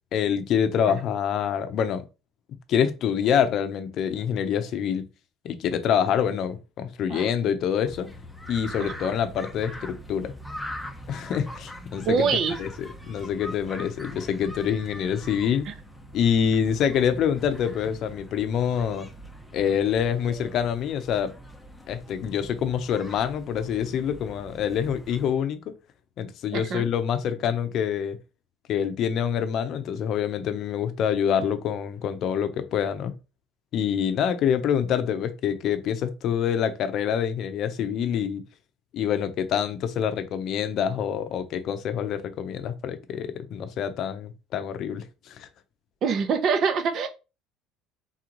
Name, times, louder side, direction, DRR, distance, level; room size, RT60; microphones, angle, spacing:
voice 1, 0.1-2.0 2.7-5.0 5.4-8.1 8.5-10.3 11.1-12.3 12.6-15.7 16.1-19.1 19.5-21.3 21.9-25.7 26.2-28.2 28.7-33.1 33.7-38.4 38.9-45.5, left 8 dB, 50° left, 0.7 m, -26 dB
sound 1, 7.9-25.3, equal, ahead, 0.8 m, -42 dB
voice 2, 8.8-9.1 12.0-12.6 15.7-15.8 26.5-26.9 46.0-47.1, right 5 dB, 45° right, 0.9 m, -25 dB
4.0 x 3.0 x 3.9 m
cardioid pair, 125°, 0 cm